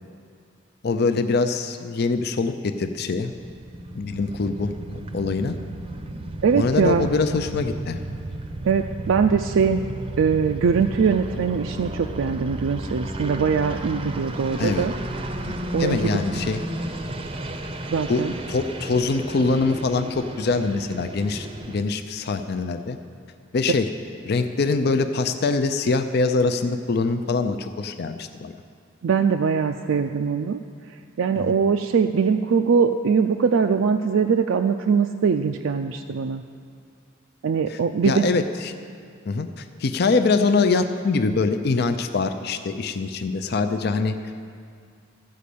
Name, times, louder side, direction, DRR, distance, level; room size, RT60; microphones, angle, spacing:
voice 1, 0.8-3.3 3.9-5.6 6.5-8.0 14.6-14.9 15.5-16.6 18.1-23.0 23.5-23.9 24.2-28.5 31.3-31.5 37.7-38.7 39.3-44.1, left 4 dB, 55° left, 8 dB, 0.5 m, -24 dB
sound 1, 3.0-21.8, right 1 dB, 25° right, 0.6 m, -33 dB
voice 2, 6.4-7.1 8.6-9.9 10.2-14.9 15.7-16.2 17.9-18.3 29.0-30.6 31.2-36.4 37.4-38.3, right 6 dB, 75° right, 5 dB, 0.4 m, -22 dB
13.5 x 5.1 x 8.4 m, 2.3 s
head